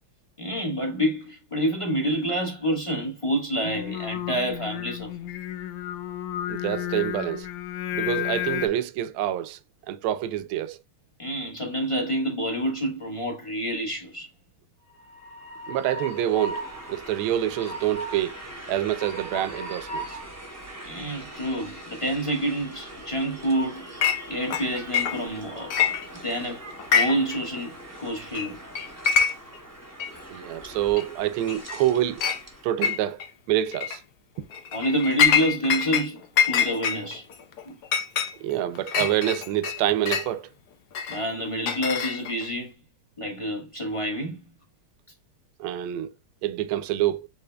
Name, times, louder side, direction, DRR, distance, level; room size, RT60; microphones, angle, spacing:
voice 1, 0.4-5.1 11.2-14.3 20.8-23.8 24.3-26.6 26.9-28.6 34.7-37.2 37.6-37.7 41.1-42.7 43.2-44.4, right 1 dB, 20° left, 1.0 m, -28 dB
Singing, 3.6-8.7, left 12 dB, 85° left, 1.5 m, -32 dB
voice 2, 6.5-7.5 7.9-9.6 9.9-10.8 15.7-18.4 18.7-20.2 30.3-32.2 32.6-33.2 33.5-34.0 38.4-40.5 45.6-46.1 46.4-47.3, right 12 dB, 80° right, 1.4 m, -26 dB
Train, 14.9-32.7, right 1 dB, 10° right, 0.7 m, -40 dB
Chink clink, 24.0-24.2 24.5-25.4 25.7-26.4 26.8-27.4 27.6-27.7 28.3-28.5 28.7-29.6 30.0-30.1 31.0-31.1 31.5-31.8 32.2-32.4 32.8-33.3 33.7-34.0 34.5-36.1 36.4-40.3 40.9-42.5, left 7 dB, 65° left, 1.0 m, -25 dB
7.7 x 3.1 x 2.2 m
omnidirectional pair, 2.4 m